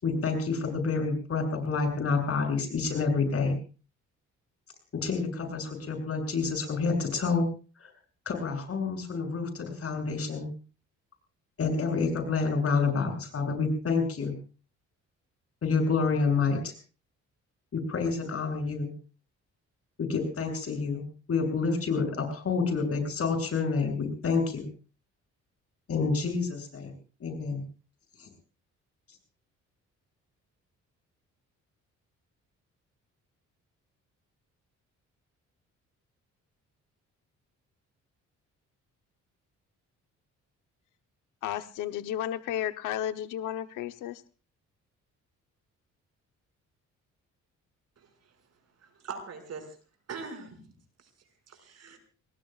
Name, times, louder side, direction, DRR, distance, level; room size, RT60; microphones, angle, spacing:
voice 1, 0.0-3.6 4.9-7.5 7.8-7.9 8.3-10.5 11.6-14.4 15.6-16.7 17.7-18.9 20.0-24.7 25.9-26.9 27.2-27.6 28.2-28.3, left 4 dB, 50° left, 4 dB, 7.4 m, -28 dB
voice 2, 41.4-44.2, left 11 dB, 90° left, 9 dB, 1.0 m, -33 dB
voice 3, 48.8-49.8 50.1-50.6 51.5-52.0, right 5 dB, 55° right, 5 dB, 6.0 m, -41 dB
28.0 x 20.0 x 2.4 m, 0.37 s
cardioid pair, 90°, 30 cm